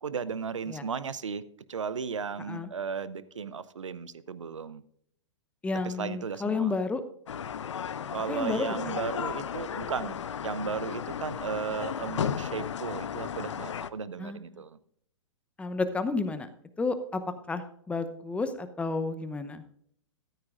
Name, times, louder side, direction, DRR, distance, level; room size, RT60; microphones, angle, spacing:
voice 1, 0.0-1.4 1.7-4.8 5.8-6.7 8.1-14.8, right 6 dB, 75° right, 0.7 m, -35 dB
voice 2, 5.6-7.0 8.3-9.0 14.2-14.6 15.6-16.5 16.8-17.2 17.5-19.6, left 3 dB, 10° left, 0.8 m, -31 dB
sound 1, 7.3-13.9, left 8 dB, 65° left, 0.7 m, -34 dB
14.0 x 13.0 x 2.5 m
figure-of-eight pair, 110°, 16 cm